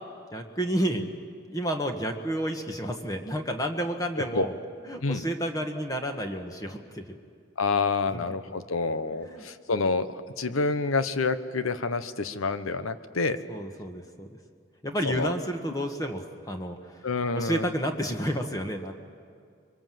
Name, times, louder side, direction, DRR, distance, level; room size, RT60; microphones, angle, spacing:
voice 1, 0.3-1.0 1.5-4.5 4.9-7.2 8.1-8.2 9.2-9.4 13.5-14.3 14.8-16.8 17.3-18.9, equal, 15° left, 4 dB, 1.4 m, -30 dB
voice 2, 7.6-13.4 15.0-15.3 17.0-17.7, left 4 dB, 90° left, 12 dB, 1.1 m, -28 dB
24.0 x 23.5 x 7.7 m, 2.2 s
head